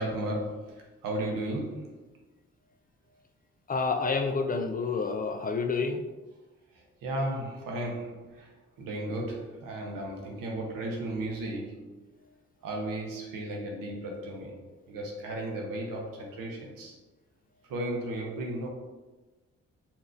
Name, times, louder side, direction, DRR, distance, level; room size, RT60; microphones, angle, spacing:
voice 1, 0.0-2.0 6.7-11.9 12.6-14.6 14.9-17.0 17.6-18.7, right 1 dB, 80° right, 0 dB, 0.8 m, -35 dB
voice 2, 3.7-6.0, left 4 dB, 25° left, 6 dB, 0.4 m, -28 dB
4.2 x 2.4 x 2.4 m, 1.2 s
supercardioid pair, 45°, 32 cm